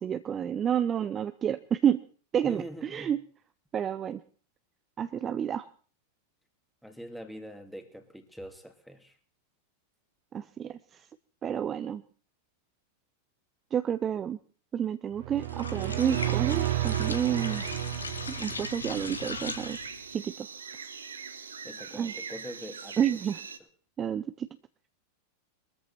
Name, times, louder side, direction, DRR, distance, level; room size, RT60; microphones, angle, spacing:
voice 1, 0.0-2.0 2.3-3.2 3.7-4.2 5.0-5.7 10.3-10.8 11.4-12.0 13.7-14.4 14.7-17.6 18.3-19.8 20.1-20.5 21.9-22.1 23.0-23.4 24.0-24.5, right 9 dB, 25° right, 11 dB, 0.7 m, -29 dB
voice 2, 2.4-3.1 6.8-9.2 21.6-23.1, equal, ahead, 5 dB, 2.6 m, -43 dB
sound 1, 15.2-19.0, right 15 dB, 50° right, 1.0 m, -31 dB
sound 2, 15.4-20.1, left 4 dB, 75° left, 1.6 m, -39 dB
sound 3, 16.0-23.6, right 5 dB, 70° right, 1.5 m, -42 dB
22.0 x 14.0 x 4.3 m, 0.42 s
figure-of-eight pair, 90°, 0 cm